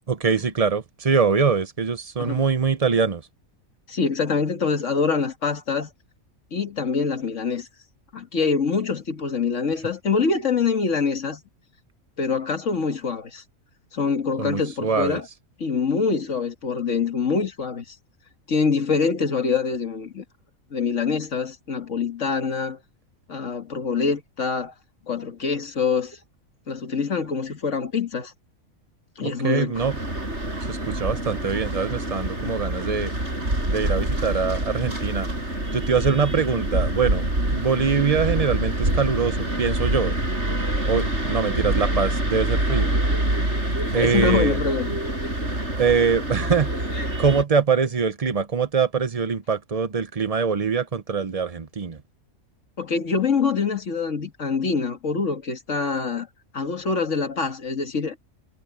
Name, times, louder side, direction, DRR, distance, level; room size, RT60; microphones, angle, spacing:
voice 1, 0.1-3.2 14.4-15.2 29.2-30.0 30.7-33.1 33.7-35.3 35.7-40.2 40.8-42.9 43.9-44.6 45.8-46.9 47.2-52.0, right 5 dB, 35° right, 0.7 m, -23 dB
voice 2, 3.9-5.9 6.5-7.7 8.1-11.4 12.2-13.4 13.9-15.3 15.6-18.0 18.5-20.2 20.7-22.8 23.3-24.7 25.1-26.2 26.7-28.3 29.2-29.9 34.7-34.9 43.5-43.6 44.0-44.9 52.8-56.3 56.5-58.2, left 5 dB, 60° left, 2.2 m, -25 dB
sound 1, 29.7-47.4, right 1 dB, 50° right, 7.8 m, -26 dB
omnidirectional pair, 1.5 m